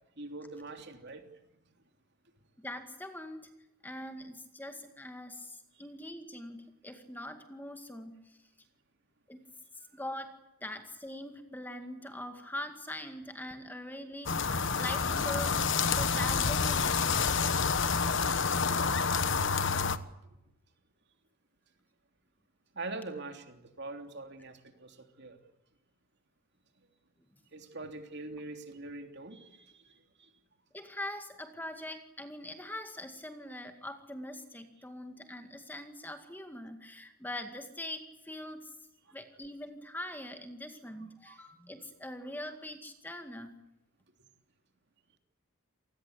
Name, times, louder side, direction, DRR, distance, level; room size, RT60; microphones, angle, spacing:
voice 1, 0.2-1.2 5.7-5.8 22.7-25.4 27.5-30.3 41.3-41.5, right 2 dB, 50° right, 6 dB, 3.3 m, -43 dB
voice 2, 2.6-3.5 3.8-8.4 9.3-9.4 9.9-15.7 16.0-17.0 30.7-38.8 39.1-43.6, left 1 dB, 10° left, 7 dB, 2.0 m, -42 dB
sound 1, 14.3-20.0, left 5 dB, 55° left, 1.3 m, -28 dB
28.0 x 20.0 x 8.3 m, 0.89 s
head